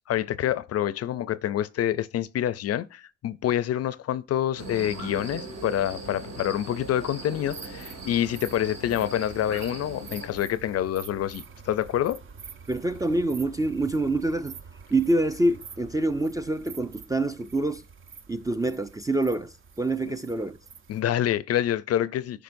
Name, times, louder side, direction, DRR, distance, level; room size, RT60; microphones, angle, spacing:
voice 1, 0.1-12.2 20.1-20.2 20.9-22.4, left 11 dB, 55° left, 0.4 m, -27 dB
sound 1, 4.6-10.3, right 2 dB, 60° right, 2.1 m, -40 dB
sound 2, 7.4-21.0, right 6 dB, 45° right, 0.7 m, -47 dB
voice 2, 12.7-14.6 14.9-17.8 18.3-20.6, right 2 dB, 10° right, 0.3 m, -26 dB
13.5 x 5.0 x 2.5 m
cardioid pair, 90°, 30 cm